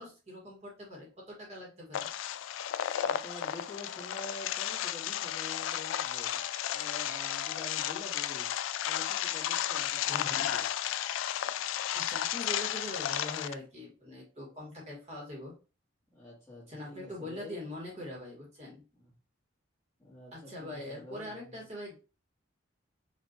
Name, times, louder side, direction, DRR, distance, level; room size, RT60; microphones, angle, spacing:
voice 1, 0.0-2.1 10.1-10.5 11.9-15.5 16.7-18.8 20.3-21.9, left 1 dB, 35° right, -4 dB, 2.0 m, -43 dB
sound 1, 1.9-13.5, left 11 dB, 80° left, 0.3 m, -33 dB
voice 2, 3.0-6.4 6.7-8.5 8.9-10.7 16.1-17.7 20.0-21.6, left 2 dB, 15° left, -6 dB, 2.0 m, -47 dB
5.4 x 3.1 x 3.0 m, 0.33 s
head